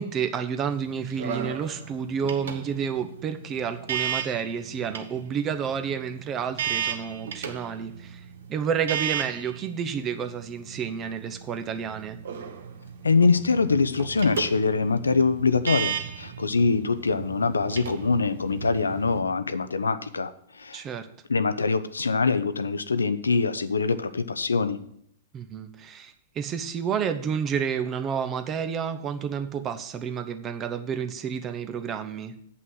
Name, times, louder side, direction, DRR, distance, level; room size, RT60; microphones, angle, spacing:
voice 1, 0.0-8.2 8.5-12.2 20.7-21.1 25.3-32.3, right 7 dB, 25° right, 9 dB, 0.8 m, -30 dB
sound 1, 0.6-19.2, right 8 dB, 65° right, 1.0 m, -35 dB
voice 2, 13.0-20.3 20.6-20.8 21.3-24.8, left 4 dB, 80° left, 13 dB, 0.6 m, -24 dB
8.2 x 5.7 x 7.6 m, 0.67 s
figure-of-eight pair, 105°, 0 cm